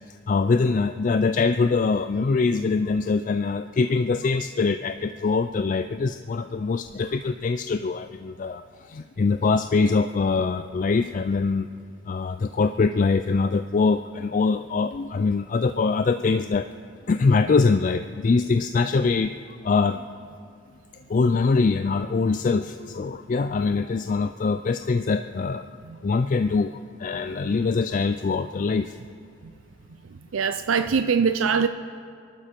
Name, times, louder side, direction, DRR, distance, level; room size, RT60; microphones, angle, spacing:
voice 1, 0.3-8.6 8.9-11.7 12.1-16.6 17.1-19.3 19.6-20.0 21.1-25.6 26.0-26.7 27.0-28.9, left 4 dB, 40° left, 9 dB, 0.3 m, -23 dB
voice 2, 30.3-31.7, right 6 dB, 85° right, 10 dB, 0.5 m, -22 dB
27.0 x 12.0 x 4.5 m, 2.3 s
head